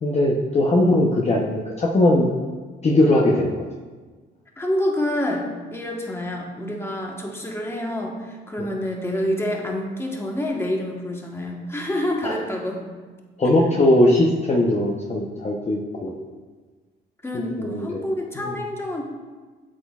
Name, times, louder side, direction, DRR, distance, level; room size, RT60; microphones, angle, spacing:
voice 1, 0.0-2.3 2.8-3.6 12.2-12.4 13.4-16.2 17.6-18.0 18.4-18.5, left 1 dB, 35° left, -2 dB, 0.8 m, -19 dB
voice 2, 4.6-12.8 17.2-19.0, left 1 dB, 10° left, 0 dB, 1.2 m, -27 dB
8.4 x 7.0 x 2.4 m, 1.4 s
cardioid pair, 90°, 20 cm